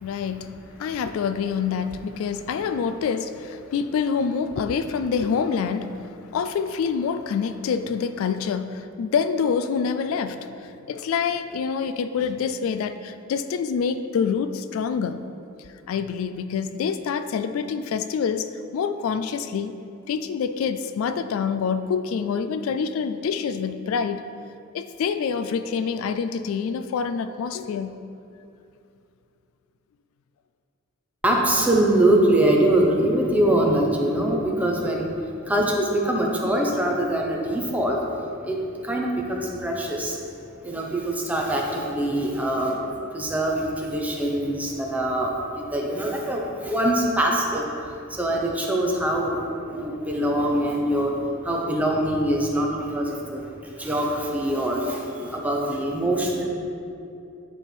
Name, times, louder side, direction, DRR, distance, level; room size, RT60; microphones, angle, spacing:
voice 1, 0.0-15.3 15.6-19.8 20.1-24.3 24.7-28.0, left 6 dB, 75° left, 10 dB, 0.3 m, -26 dB
voice 2, 31.2-35.2 35.5-38.1 38.4-40.2 40.6-47.7 48.1-49.4 49.7-56.4, right 1 dB, 5° right, -1 dB, 0.8 m, -23 dB
9.7 x 3.5 x 4.5 m, 2.6 s
head